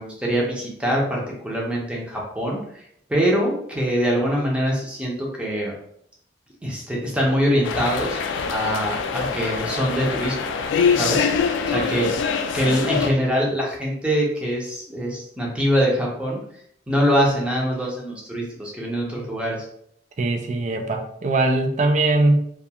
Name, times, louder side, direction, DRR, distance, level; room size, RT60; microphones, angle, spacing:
voice 1, 0.0-2.8 3.1-5.7 6.6-8.2 8.5-10.5 10.9-11.3 11.7-16.4 16.9-19.6, equal, 5° right, -3 dB, 0.6 m, -23 dB
sound 1, 7.6-13.1, left 6 dB, 85° left, 0.3 m, -24 dB
voice 2, 20.2-22.4, right 2 dB, 40° right, 5 dB, 0.3 m, -21 dB
2.3 x 2.3 x 2.8 m, 0.70 s
head